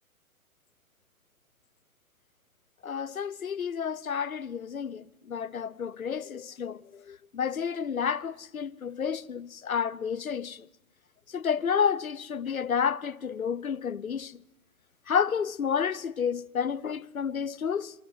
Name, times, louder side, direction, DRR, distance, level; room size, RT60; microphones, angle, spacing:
voice 1, 2.8-6.8 7.1-10.6 11.3-14.3 15.1-17.9, left 7 dB, 70° left, 1.0 m, -30 dB
29.0 x 25.5 x 5.6 m
figure-of-eight pair, 125°, 43 cm